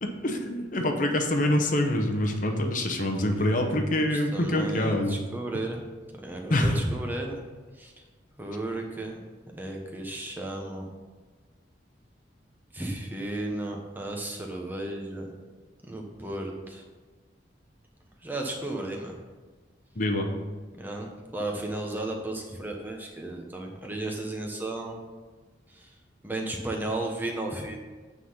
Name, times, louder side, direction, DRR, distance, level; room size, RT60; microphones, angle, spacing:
voice 1, 0.0-5.2 6.5-6.8 20.0-20.3, left 1 dB, 45° left, 4 dB, 0.9 m, -25 dB
voice 2, 3.2-7.4 7.7-7.9 8.4-9.2 9.6-10.9 12.7-15.3 15.8-16.8 18.2-19.2 20.8-25.0 25.7-25.9 26.2-27.8, right 2 dB, 10° right, 1 dB, 1.0 m, -34 dB
9.2 x 3.9 x 5.6 m, 1.3 s
head